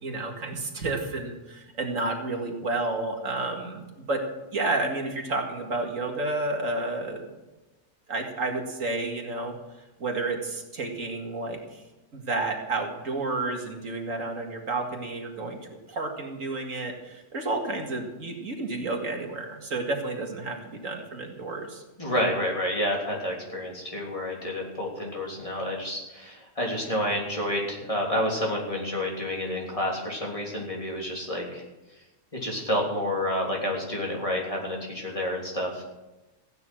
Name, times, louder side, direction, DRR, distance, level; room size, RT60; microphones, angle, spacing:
voice 1, 0.0-4.2 4.5-7.3 8.1-9.5 10.0-11.8 12.1-21.8, right 2 dB, 85° right, 2 dB, 2.5 m, -31 dB
voice 2, 22.0-31.6 32.4-35.8, left 1 dB, 25° left, -2 dB, 3.4 m, -29 dB
15.5 x 9.5 x 6.2 m, 1.1 s
omnidirectional pair, 1.3 m